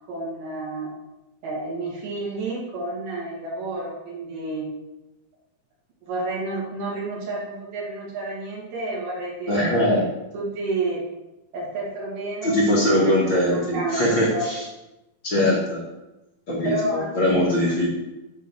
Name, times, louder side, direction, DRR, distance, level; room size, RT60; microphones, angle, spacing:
voice 1, 0.1-0.9 1.4-4.7 6.1-9.8 10.3-11.0 11.5-14.0 14.3-14.5 16.6-17.1, right 2 dB, 65° right, -5 dB, 3.6 m, -30 dB
voice 2, 9.5-10.0 12.4-14.6 15.2-15.8 16.5-17.9, left 1 dB, 40° left, -5 dB, 2.0 m, -21 dB
10.0 x 4.0 x 6.5 m, 0.98 s
omnidirectional pair, 4.3 m